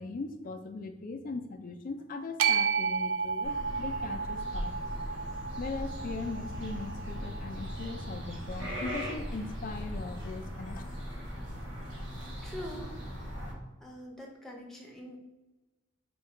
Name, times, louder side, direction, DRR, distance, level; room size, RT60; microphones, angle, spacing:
voice 1, 0.0-4.7 5.6-10.8, left 3 dB, 45° left, 5 dB, 0.4 m, -39 dB
sound 1, 2.4-8.6, right 6 dB, 85° right, 0.4 m, -33 dB
sound 2, 3.4-13.5, equal, 60° right, 1.0 m, -39 dB
voice 2, 12.4-13.0 13.8-15.2, equal, ahead, -1 dB, 0.6 m, -44 dB
4.3 x 2.3 x 4.7 m, 1.1 s
head